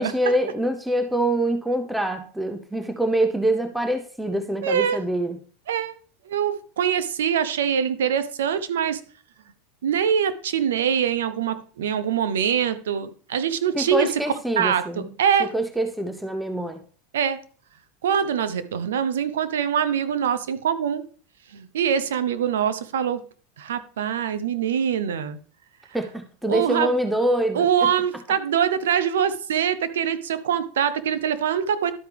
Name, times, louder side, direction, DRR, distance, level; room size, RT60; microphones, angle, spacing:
voice 1, 0.0-5.4 13.7-15.1 15.4-16.8 25.9-27.9, right 1 dB, 5° right, 0.6 m, -25 dB
voice 2, 4.6-5.0 5.7-6.0 6.3-9.0 9.8-14.1 14.6-15.5 17.1-17.4 18.0-21.0 21.5-23.2 23.6-25.4 26.5-26.9 27.5-31.9, right 8 dB, 85° right, 0.7 m, -24 dB
12.0 x 4.7 x 3.4 m
supercardioid pair, 115°, 0 cm